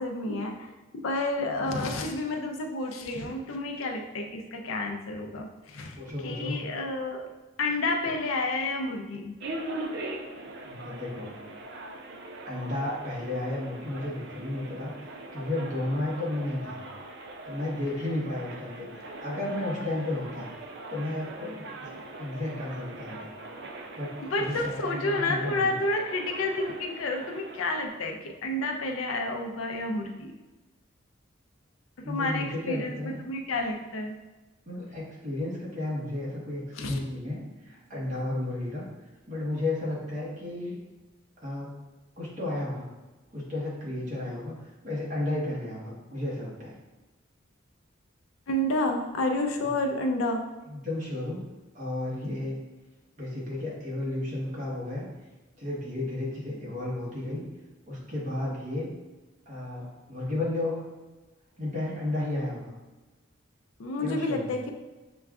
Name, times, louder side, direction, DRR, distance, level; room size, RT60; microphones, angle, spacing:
voice 1, 0.0-7.3 7.6-9.4 24.2-30.3 32.0-34.1 36.7-37.0 48.5-50.4 63.8-64.7, left 2 dB, 85° left, 4 dB, 0.5 m, -30 dB
voice 2, 1.5-2.0 6.0-6.6 10.6-11.3 12.5-14.9 15.3-16.8 17.5-20.5 20.9-21.9 22.2-23.3 24.0-25.8 32.0-33.2 34.7-38.8 39.3-40.8 41.4-41.7 42.2-42.9 43.3-44.5 44.8-46.8 50.7-51.4 51.7-52.6 53.2-55.1 55.6-57.4 57.9-58.9 59.5-60.8 61.6-62.7 64.0-64.5, left 1 dB, 40° right, -5 dB, 1.1 m, -33 dB
sound 1, 9.4-27.9, right 2 dB, 55° right, 0.4 m, -41 dB
6.7 x 2.3 x 2.4 m, 1.2 s
head